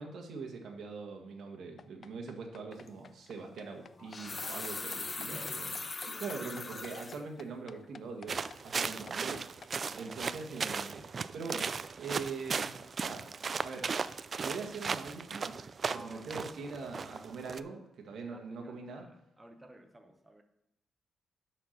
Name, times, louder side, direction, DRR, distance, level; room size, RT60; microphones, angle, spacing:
voice 1, 0.0-5.7 6.2-9.4 9.9-11.7 12.0-12.7 13.0-13.3 13.6-13.9 14.4-15.6 15.9-19.0, right 4 dB, 70° right, 2 dB, 1.5 m, -42 dB
sound 1, 1.8-9.7, left 6 dB, 45° left, 0.3 m, -52 dB
sound 2, 2.7-2.9 3.9-7.2 7.7-7.8 8.3-8.6 8.8-9.0, left 3 dB, 25° left, 0.7 m, -40 dB
voice 2, 5.1-5.7 6.0-6.3 9.8-10.2 15.8-16.3 18.1-20.4, right 1 dB, 15° right, 5 dB, 0.8 m, -53 dB
sound 3, 8.3-17.6, right 5 dB, 40° right, 0.3 m, -37 dB
11.0 x 4.5 x 6.5 m, 0.82 s
cardioid pair, 125°, 0 cm